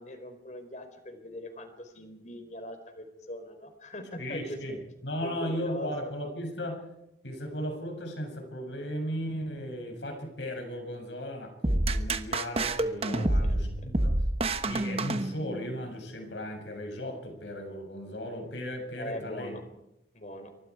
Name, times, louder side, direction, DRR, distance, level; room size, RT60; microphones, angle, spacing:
voice 1, 0.0-4.6 5.2-5.9 13.0-13.5 19.0-19.6 20.1-20.5, left 1 dB, 40° left, 7 dB, 4.1 m, -41 dB
voice 2, 4.2-6.8 7.2-14.2 14.6-19.6, equal, 80° left, 3 dB, 7.1 m, -36 dB
sound 1, 11.6-15.8, right 1 dB, 35° right, 1.1 m, -28 dB
28.0 x 24.5 x 4.8 m, 0.85 s
head